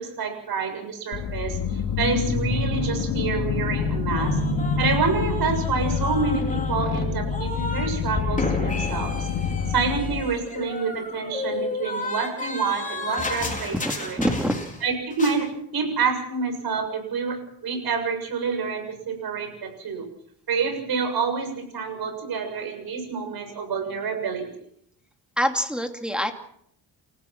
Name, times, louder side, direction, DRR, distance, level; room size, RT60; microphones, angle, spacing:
voice 1, 0.0-1.6 2.0-4.4 4.8-9.3 9.7-14.2 14.8-17.4 17.6-20.1 20.5-24.5, right 5 dB, 55° right, 6 dB, 7.2 m, -27 dB
sound 1, 1.1-10.2, left 5 dB, 75° left, 2.8 m, -26 dB
sound 2, 4.2-7.9 8.2-14.9 15.1-15.4, left 2 dB, 20° left, 4.9 m, -32 dB
voice 2, 14.2-14.6 25.4-26.3, equal, ahead, 4 dB, 2.5 m, -25 dB
29.0 x 15.5 x 6.1 m, 0.70 s
cardioid pair, 120°, 42 cm